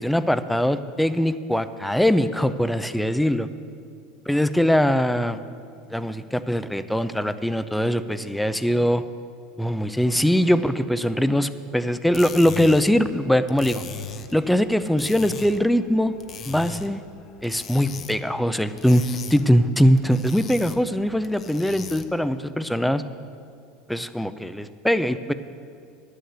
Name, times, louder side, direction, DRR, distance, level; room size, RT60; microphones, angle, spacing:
voice 1, 0.0-3.5 4.3-5.4 5.9-9.0 9.6-13.8 14.3-16.1 16.4-17.0 17.4-19.1 19.3-23.0 23.9-25.3, equal, 5° left, 12 dB, 0.4 m, -22 dB
sound 1, 11.9-22.3, left 6 dB, 35° left, 0.7 m, -40 dB
11.0 x 6.6 x 8.0 m, 2.4 s
supercardioid pair, 115°, 0 cm